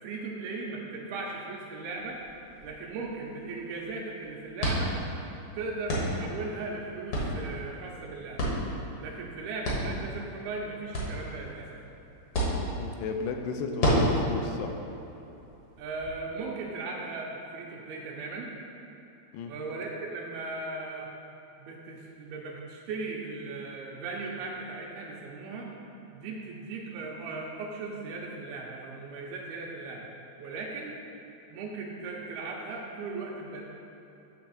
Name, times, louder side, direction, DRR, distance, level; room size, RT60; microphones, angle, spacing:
voice 1, 0.0-2.2 2.6-4.9 5.5-8.5 9.0-11.8 15.8-18.5 19.5-21.1 21.6-25.7 26.1-30.1 30.4-30.9 31.5-33.6, right 3 dB, 80° right, -1 dB, 2.4 m, -37 dB
sound 1, 2.0-16.1, equal, 65° left, 1.4 m, -33 dB
voice 2, 12.8-14.8 19.3-19.5, left 4 dB, 85° left, 4 dB, 2.7 m, -34 dB
8.8 x 3.4 x 6.2 m, 3.0 s
omnidirectional pair, 4.7 m